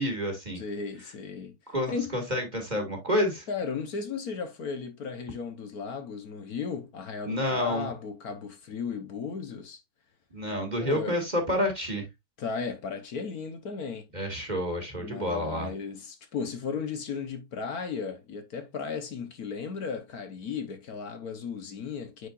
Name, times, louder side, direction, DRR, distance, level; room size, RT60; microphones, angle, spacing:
voice 1, 0.0-0.6 1.7-3.5 7.3-7.9 10.3-12.1 14.1-15.7, left 1 dB, 20° right, 1.6 m, -29 dB
voice 2, 0.6-1.5 1.9-2.1 3.5-9.8 10.8-11.2 12.4-14.1 15.0-22.3, left 5 dB, 55° left, 1.2 m, -35 dB
9.5 x 4.2 x 2.4 m
omnidirectional pair, 2.3 m